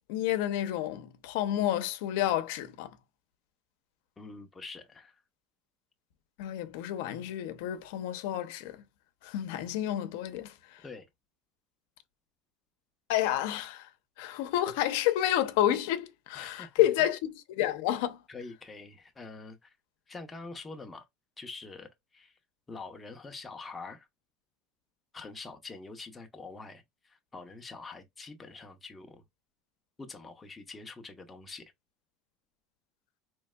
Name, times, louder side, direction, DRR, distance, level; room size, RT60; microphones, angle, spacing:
voice 1, 0.1-2.9 6.4-8.8 9.2-10.5 13.1-13.9 14.2-18.2, left 12 dB, 85° left, 0.6 m, -30 dB
voice 2, 4.2-5.2 10.8-11.1 16.3-17.1 18.3-19.7 20.1-21.1 21.4-22.3 22.7-24.1 25.1-29.2 30.0-31.7, left 3 dB, 15° left, 0.6 m, -45 dB
4.5 x 3.1 x 2.3 m
cardioid pair, 150°, 0 cm